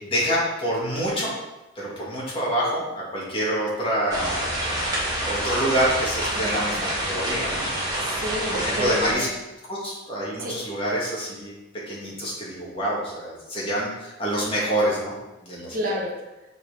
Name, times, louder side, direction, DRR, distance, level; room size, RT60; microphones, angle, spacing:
voice 1, 0.0-1.3 1.8-4.9 5.2-6.8 7.1-7.7 8.5-9.3 9.7-11.5 11.9-15.1 15.4-15.8, equal, 25° left, -6 dB, 2.3 m, -26 dB
sound 1, 4.1-9.1, right 1 dB, 20° right, 1.7 m, -27 dB
voice 2, 6.3-7.1 8.0-9.3 10.4-10.6 15.7-16.2, equal, 45° right, -2 dB, 1.3 m, -31 dB
6.7 x 4.3 x 5.1 m, 1.0 s
head